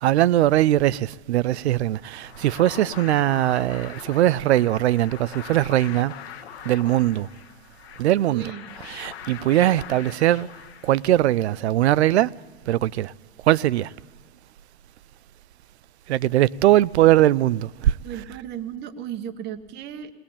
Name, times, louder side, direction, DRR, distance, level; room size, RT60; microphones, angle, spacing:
voice 1, 0.0-6.1 6.6-7.3 8.0-8.5 8.8-10.5 10.8-12.3 12.7-13.1 13.5-13.9 16.1-18.0, right 14 dB, 80° right, 0.6 m, -20 dB
sound 1, 2.0-11.4, left 10 dB, 65° left, 1.4 m, -42 dB
voice 2, 8.3-8.7 18.0-20.1, right 10 dB, 30° right, 1.2 m, -35 dB
20.0 x 19.5 x 8.7 m
hypercardioid pair, 135°, 33 cm